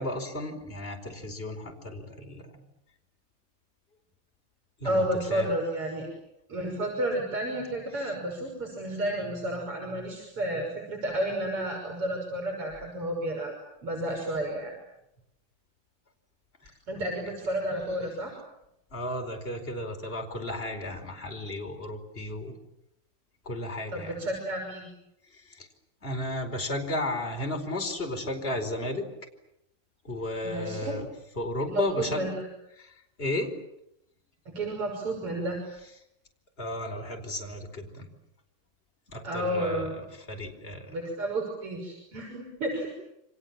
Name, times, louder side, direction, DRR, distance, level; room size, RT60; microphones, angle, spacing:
voice 1, 0.0-2.5 4.8-5.5 8.0-8.1 18.9-22.6 23.4-24.2 25.3-25.7 26.0-29.1 30.0-31.1 31.3-32.3 32.8-33.5 36.6-38.1 39.1-39.9 40.2-40.9, left 1 dB, 25° left, 3 dB, 4.9 m, -34 dB
voice 2, 4.8-6.1 6.5-13.5 13.8-14.8 16.9-18.3 23.9-24.9 30.4-31.0 31.7-32.5 34.5-35.6 39.2-40.0 40.9-42.9, right 1 dB, 85° right, 1 dB, 7.1 m, -31 dB
30.0 x 26.5 x 7.5 m, 0.83 s
omnidirectional pair, 2.4 m